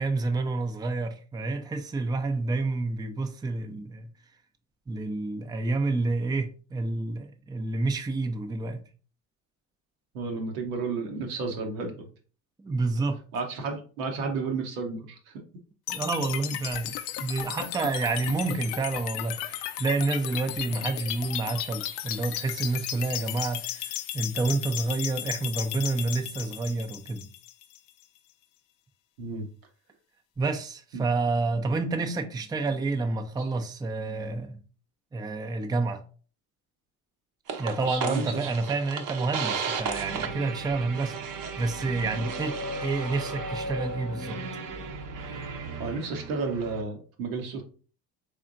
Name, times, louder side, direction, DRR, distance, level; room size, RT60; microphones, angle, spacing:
voice 1, 0.0-4.1 4.9-8.8 12.6-13.2 15.9-16.9 17.2-27.2 30.4-34.6 35.1-36.0 37.6-44.4, right 3 dB, 10° right, 0.4 m, -29 dB
voice 2, 10.1-12.0 13.3-15.4 29.2-29.5 30.9-31.0 33.4-33.5 37.8-38.5 45.8-47.6, right 4 dB, 85° right, 1.1 m, -32 dB
sound 1, 15.9-27.9, left 12 dB, 75° left, 0.5 m, -35 dB
sound 2, 37.5-46.8, right 6 dB, 50° right, 0.8 m, -36 dB
sound 3, 40.1-45.5, equal, 20° left, 1.0 m, -39 dB
3.6 x 3.4 x 2.5 m
supercardioid pair, 75°, 42 cm